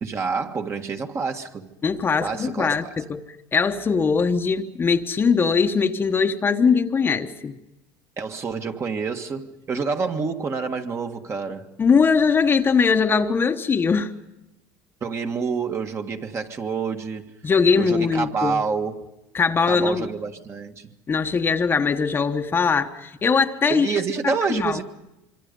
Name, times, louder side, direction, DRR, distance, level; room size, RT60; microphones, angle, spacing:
voice 1, 0.0-1.7 2.2-2.7 8.2-11.7 15.0-17.3 17.8-19.1 19.7-20.9 23.7-24.8, right 5 dB, 30° right, 1.7 m, -28 dB
voice 2, 1.8-3.2 3.5-7.6 11.8-14.1 17.4-18.6 19.3-20.1 21.1-24.0 24.5-24.8, left 5 dB, 25° left, 1.1 m, -21 dB
26.0 x 24.5 x 5.4 m
supercardioid pair, 115°, 9 cm